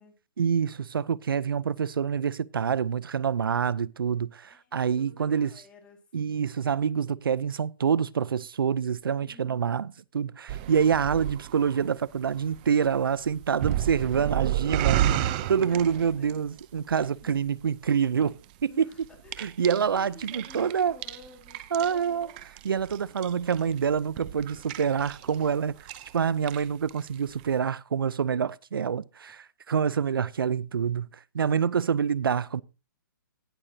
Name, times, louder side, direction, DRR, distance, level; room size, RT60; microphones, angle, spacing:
voice 1, 0.4-5.5 6.1-9.9 10.1-15.1 15.5-18.3 18.6-18.9 19.4-21.0 21.7-22.3 22.6-25.7 26.1-31.1 31.3-32.6, right 7 dB, 90° right, 0.6 m, -26 dB
voice 2, 4.4-6.5 9.2-10.0 14.2-14.3 15.1-16.6 17.0-17.4 18.7-22.4 29.4-29.5, left 4 dB, 10° left, 2.1 m, -53 dB
sound 1, 10.5-16.6 16.9-17.6 18.2-18.4 18.9-25.5 25.8-26.2 26.4-27.1 27.4-27.5, right 12 dB, 25° right, 0.6 m, -32 dB
18.0 x 6.6 x 2.8 m
hypercardioid pair, 160°, 11 cm